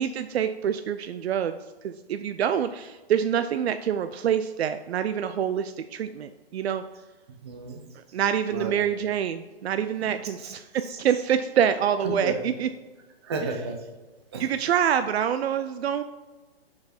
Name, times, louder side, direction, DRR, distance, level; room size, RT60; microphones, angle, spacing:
voice 1, 0.0-1.6 1.8-6.8 8.1-12.7 14.4-16.0, right 9 dB, 80° right, 10 dB, 0.5 m, -26 dB
voice 2, 7.4-7.8 8.5-8.8 10.0-10.1 10.4-10.5 10.8-11.0 12.0-12.4 13.2-13.8 14.3-14.5, right 3 dB, 25° right, 3 dB, 0.7 m, -32 dB
6.3 x 4.8 x 4.2 m, 1.2 s
hypercardioid pair, 170°, 32 cm